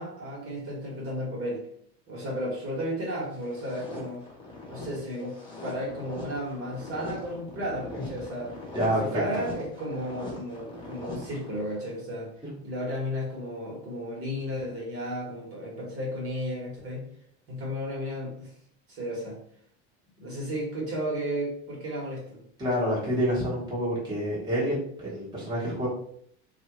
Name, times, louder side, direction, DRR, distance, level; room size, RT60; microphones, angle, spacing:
voice 1, 0.0-1.6 2.1-4.2 4.7-5.4 5.6-8.5 9.0-12.3 12.6-17.0 17.5-18.5 18.9-19.4 20.2-22.4, equal, 45° right, -3 dB, 1.5 m, -33 dB
sound 1, 3.3-11.9, left 2 dB, 15° left, 1.2 m, -41 dB
voice 2, 8.7-9.2 12.4-12.5 22.6-25.9, equal, 10° right, -6 dB, 1.3 m, -28 dB
2.7 x 2.5 x 3.0 m, 0.65 s
supercardioid pair, 110°, 32 cm